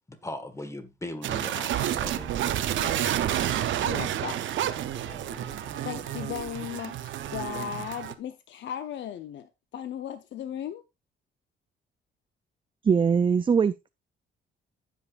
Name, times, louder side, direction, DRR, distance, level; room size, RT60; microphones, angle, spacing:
voice 1, 0.1-2.3 4.1-4.3 5.0-5.3, left 1 dB, 15° left, 1.7 m, -39 dB
sound 1, 1.2-8.1, right 11 dB, 75° right, 0.8 m, -30 dB
sound 2, 2.1-7.2, left 3 dB, 50° left, 4.5 m, -49 dB
voice 2, 3.8-4.4 5.8-10.8, left 10 dB, 70° left, 0.7 m, -37 dB
voice 3, 12.8-13.9, right 6 dB, 25° right, 0.4 m, -22 dB
15.0 x 5.2 x 2.5 m
cardioid pair, 90°, 20 cm